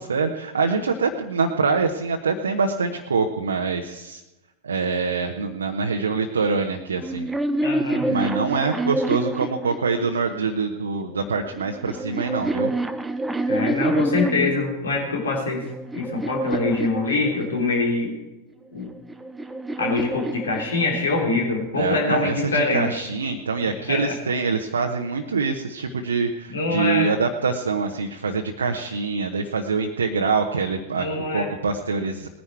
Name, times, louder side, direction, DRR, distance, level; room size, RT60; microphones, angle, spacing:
voice 1, 0.0-4.2 4.6-7.3 8.1-12.7 21.8-32.3, right 4 dB, 70° right, 3 dB, 1.0 m, -25 dB
sound 1, 7.0-10.4 11.3-14.7 15.3-17.8 18.8-21.2, right 1 dB, 10° right, 0.8 m, -27 dB
voice 2, 7.6-8.1 13.5-15.7 15.9-18.1 18.7-18.9 19.8-23.0 23.9-24.2 26.5-27.1 31.0-31.5, left 3 dB, 70° left, 0 dB, 3.5 m, -24 dB
20.0 x 10.5 x 4.7 m, 1.1 s
figure-of-eight pair, 90°, 0 cm